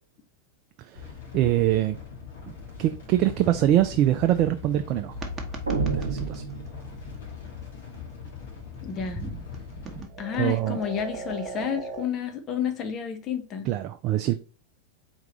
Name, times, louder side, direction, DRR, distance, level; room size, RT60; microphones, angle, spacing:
voice 1, 0.8-2.0 2.5-2.6 2.8-5.1 5.9-6.4 10.4-10.8 13.6-14.4, right 13 dB, 40° right, 0.4 m, -24 dB
sound 1, 0.9-10.0, left 6 dB, 60° left, 1.6 m, -41 dB
sound 2, 5.1-12.1, right 2 dB, 20° right, 1.0 m, -39 dB
sound 3, 5.7-7.3, right 5 dB, 80° right, 1.0 m, -29 dB
voice 2, 8.8-9.2 10.2-13.7, left 8 dB, 30° left, 1.0 m, -30 dB
4.6 x 3.6 x 3.0 m
figure-of-eight pair, 90°, 0 cm